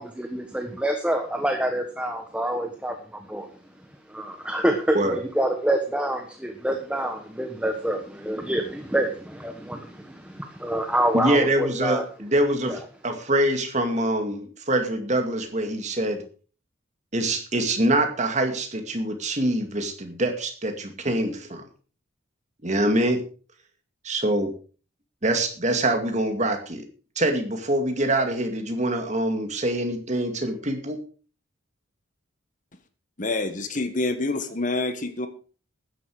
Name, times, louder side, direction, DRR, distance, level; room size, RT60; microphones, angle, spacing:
voice 1, 0.0-3.5 4.1-12.0 12.7-12.8, right 1 dB, 5° right, 4 dB, 1.2 m, -27 dB
voice 2, 11.1-16.2 17.1-21.6 22.6-23.2 24.0-24.5 25.2-26.8 27.2-31.0, right 1 dB, 35° right, 5 dB, 2.2 m, -24 dB
voice 3, 33.2-35.3, left 2 dB, 40° left, 10 dB, 1.3 m, -27 dB
13.0 x 10.0 x 4.8 m, 0.38 s
head